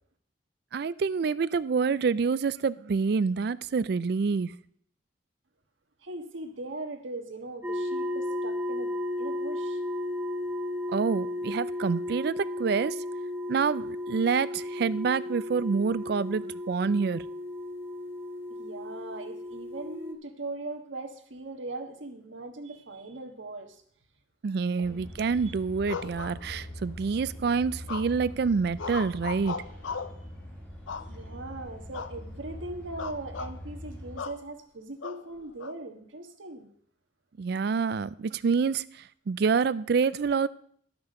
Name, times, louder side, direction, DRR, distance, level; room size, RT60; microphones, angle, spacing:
voice 1, 0.7-4.5 10.9-13.0 13.5-17.2 24.4-29.6 37.4-40.5, right 5 dB, 55° right, 0.4 m, -27 dB
voice 2, 6.0-9.8 18.5-23.8 24.8-25.1 31.1-36.7, right 2 dB, 90° right, 1.4 m, -40 dB
sound 1, 7.6-20.1, left 1 dB, 10° right, 0.8 m, -34 dB
sound 2, 24.8-34.2, equal, 10° left, 2.0 m, -43 dB
sound 3, 25.9-26.9 27.9-28.3 28.8-30.2 30.9-31.5 31.9-32.2 32.5-32.6 33.0-33.6 34.2-34.4 35.0-35.7, left 5 dB, 90° left, 0.6 m, -37 dB
11.5 x 6.0 x 6.4 m
head